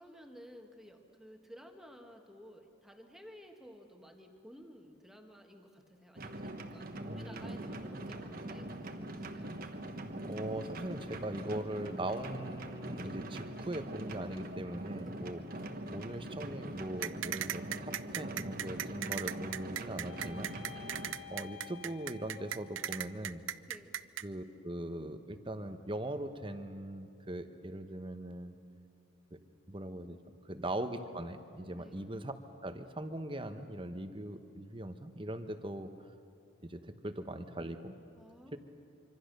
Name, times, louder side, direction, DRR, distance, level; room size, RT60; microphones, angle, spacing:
voice 1, 0.0-9.6 23.7-24.0 31.7-32.1 38.1-38.6, equal, ahead, 3 dB, 1.6 m, -54 dB
sound 1, 6.2-21.1, right 1 dB, 45° right, 1.3 m, -43 dB
voice 2, 7.1-7.6 10.2-20.5 21.3-23.4 24.2-28.6 29.3-29.4 29.7-30.2 30.4-32.3 32.6-35.9 36.6-37.9 38.5-38.6, right 1 dB, 25° right, 9 dB, 1.0 m, -40 dB
sound 2, 17.0-24.2, right 11 dB, 70° right, 0.5 m, -37 dB
sound 3, 18.9-23.2, left 10 dB, 75° left, 1.7 m, -53 dB
25.5 x 24.5 x 6.7 m, 2.5 s
head